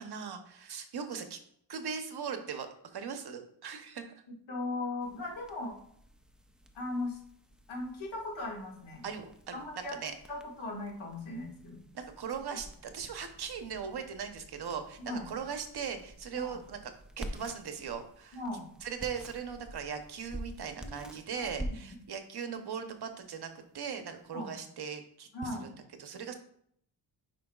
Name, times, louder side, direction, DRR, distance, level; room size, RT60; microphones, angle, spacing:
voice 1, 0.0-1.4 1.7-2.7 2.9-4.1 9.0-10.1 11.9-16.8 17.2-18.4 18.8-25.3 25.6-26.3, right 6 dB, 55° right, 7 dB, 0.9 m, -39 dB
voice 2, 4.5-5.8 6.7-7.2 7.7-9.0 9.5-10.0 10.3-11.8 15.0-15.3 16.3-16.6 18.3-18.7 20.9-22.0 24.3-24.5 25.3-25.7, left 2 dB, 80° left, -1 dB, 2.0 m, -38 dB
sound 1, 5.0-24.6, right 1 dB, ahead, 0.4 m, -49 dB
9.2 x 5.3 x 2.4 m, 0.67 s
wide cardioid pair, 135°, 46 cm